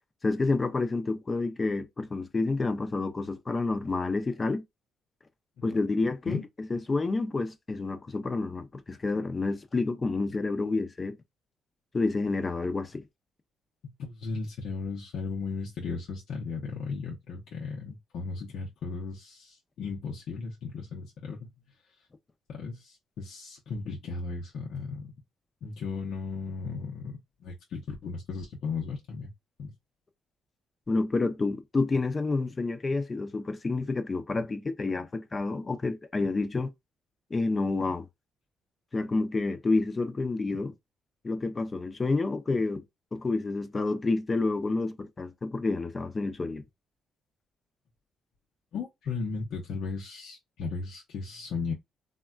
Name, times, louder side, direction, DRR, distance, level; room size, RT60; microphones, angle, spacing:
voice 1, 0.2-4.6 5.6-11.2 11.9-13.0 30.9-36.7 37.3-38.1 38.9-40.7 41.2-42.8 43.1-46.6, left 3 dB, 30° left, 0.5 m, -29 dB
voice 2, 13.8-21.5 22.5-25.1 25.6-29.3 29.6-29.7 48.7-51.7, left 4 dB, 75° left, 0.7 m, -36 dB
3.5 x 2.2 x 2.3 m
cardioid pair, 90°, 0 cm